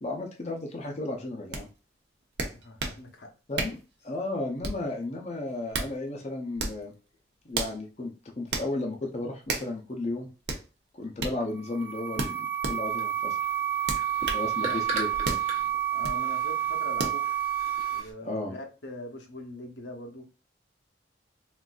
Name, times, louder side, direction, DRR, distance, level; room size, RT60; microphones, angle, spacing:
voice 1, 0.0-1.7 3.5-3.8 4.0-6.9 7.5-10.3 10.9-13.4 14.3-15.4 18.2-18.5, left 2 dB, 40° left, 0.5 m, -34 dB
sound 1, 1.5-1.6 2.4-3.0 3.6-3.8 4.6-4.9 5.5-5.9 6.6-6.8 7.5-7.8 8.5-8.7 9.5-9.7 10.5-10.6 11.2-11.4 12.2-12.8 13.9-14.5 15.2-15.5 16.0-16.2 17.0-17.2, right 3 dB, 65° right, 0.7 m, -32 dB
voice 2, 2.5-3.3 14.6-14.8 15.9-17.3 17.9-20.3, left 1 dB, 75° left, 0.8 m, -42 dB
sound 2, 11.5-18.0, right 11 dB, 10° right, 0.5 m, -29 dB
sound 3, 12.9-18.1, right 2 dB, 40° right, 0.9 m, -40 dB
3.8 x 2.5 x 2.4 m
head